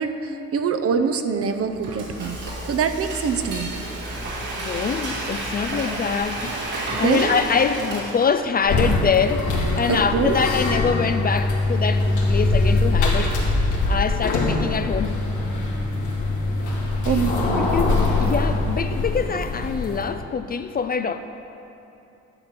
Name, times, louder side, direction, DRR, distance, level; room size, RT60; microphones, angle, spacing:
voice 1, 0.0-2.4 2.6-3.7 6.9-7.4 9.9-10.4 17.0-17.7, right 6 dB, 50° right, 7 dB, 0.7 m, -24 dB
Frying (food), 1.5-8.6, right 1 dB, 80° right, 2.1 m, -31 dB
voice 2, 4.6-9.5 9.8-13.3 13.8-15.2 17.0-17.1 17.6-21.2, left 6 dB, 30° left, 9 dB, 0.4 m, -24 dB
sound 1, 8.6-20.1, left 2 dB, 80° left, 1.9 m, -22 dB
10.5 x 4.3 x 7.4 m, 2.9 s
cardioid pair, 90°, 30 cm